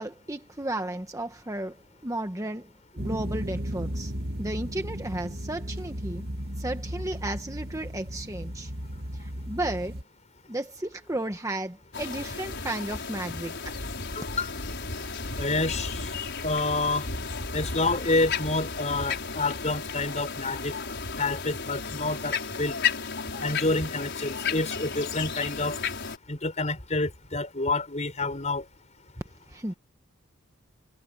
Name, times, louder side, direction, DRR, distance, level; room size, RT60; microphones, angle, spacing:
voice 1, 0.0-1.8 2.0-2.7 2.9-4.1 4.4-6.2 6.6-8.7 9.2-9.9 10.5-13.7 29.5-29.7, right 1 dB, 15° right, 1.0 m, -33 dB
sound 1, 3.0-10.0, equal, 45° right, 2.5 m, -35 dB
sound 2, 11.9-26.2, left 5 dB, 50° left, 6.0 m, -33 dB
voice 2, 14.2-14.5 15.4-16.1 16.4-17.1 17.5-20.7 21.2-22.8 23.4-25.8 26.3-28.6, left 2 dB, 30° left, 5.3 m, -28 dB
head